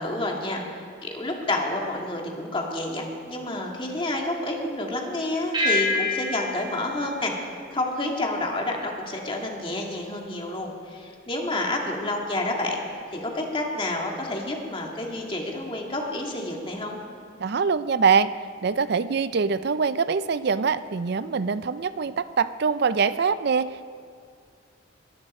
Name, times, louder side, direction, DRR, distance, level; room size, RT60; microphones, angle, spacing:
voice 1, 0.0-7.3 7.7-12.9 13.1-17.0, left 2 dB, 25° left, 0 dB, 2.1 m, -29 dB
sound 1, 5.5-8.3, left 2 dB, 25° right, 2.2 m, -28 dB
voice 2, 17.4-18.3 18.6-23.9, right 5 dB, 55° right, 14 dB, 0.5 m, -24 dB
23.0 x 12.5 x 4.3 m, 2.2 s
head